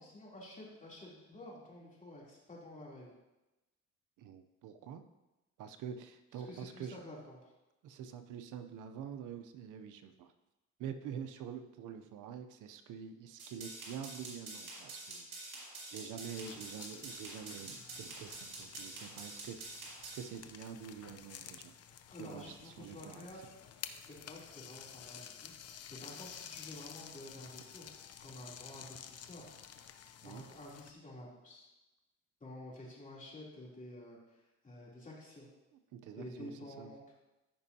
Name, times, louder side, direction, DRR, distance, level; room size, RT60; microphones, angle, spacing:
voice 1, 0.0-3.1 6.4-7.5 22.1-23.5 24.1-25.5 25.9-27.9 28.2-29.5 30.2-31.7 32.4-35.5 36.1-37.0, left 1 dB, 25° left, -4 dB, 3.1 m, -50 dB
voice 2, 4.2-5.0 5.6-7.0 7.8-10.3 10.8-15.6 15.9-21.7 22.2-23.3 30.2-30.4 35.9-36.5 36.8-36.9, right 8 dB, 85° right, 8 dB, 0.7 m, -46 dB
sound 1, 13.4-20.2, right 3 dB, 55° right, 2.7 m, -47 dB
sound 2, 16.3-30.9, left 8 dB, 55° left, 0.7 m, -52 dB
14.0 x 5.4 x 2.8 m, 1.0 s
cardioid pair, 90°, 30 cm